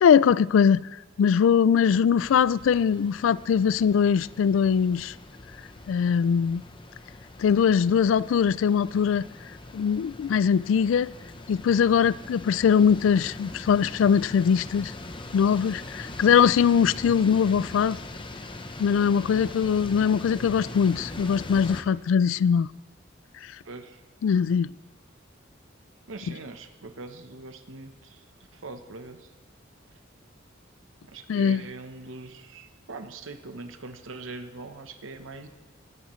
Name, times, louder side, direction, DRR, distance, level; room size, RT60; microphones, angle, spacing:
voice 1, 0.0-0.8 1.2-5.1 5.9-6.6 7.4-9.3 9.7-11.1 11.5-14.9 15.3-18.0 18.8-22.7 24.2-24.8 31.3-31.6, left 7 dB, 75° left, 0.3 m, -21 dB
sound 1, 2.2-21.8, left 2 dB, 25° left, 0.8 m, -41 dB
voice 2, 23.6-24.0 26.1-28.2 28.5-29.3 31.1-35.5, right 3 dB, 85° right, 0.9 m, -42 dB
22.0 x 13.5 x 3.2 m
head